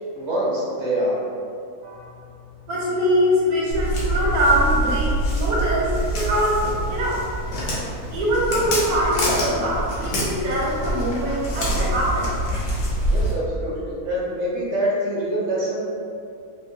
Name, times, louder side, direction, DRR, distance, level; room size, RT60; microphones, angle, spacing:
voice 1, 0.1-1.2 13.1-16.0, right 1 dB, 55° right, -6 dB, 1.0 m, -25 dB
voice 2, 2.7-6.6 6.9-7.3 8.1-12.3, equal, 80° right, -6 dB, 1.3 m, -22 dB
Walk footsteps, 3.7-13.3, right 1 dB, 85° left, 1.3 m, -25 dB
3.6 x 2.4 x 2.7 m, 2.4 s
omnidirectional pair, 1.6 m